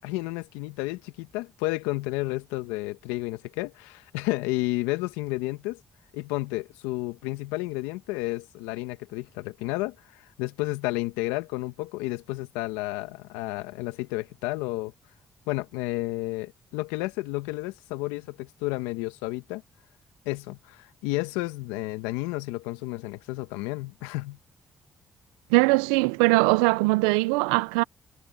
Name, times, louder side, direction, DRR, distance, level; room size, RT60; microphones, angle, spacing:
voice 1, 0.0-5.8 6.1-14.9 15.5-19.6 20.2-24.4, left 21 dB, 85° left, 1.4 m, -31 dB
voice 2, 25.5-27.8, right 25 dB, 85° right, 0.6 m, -21 dB
hypercardioid pair, 45°, 4 cm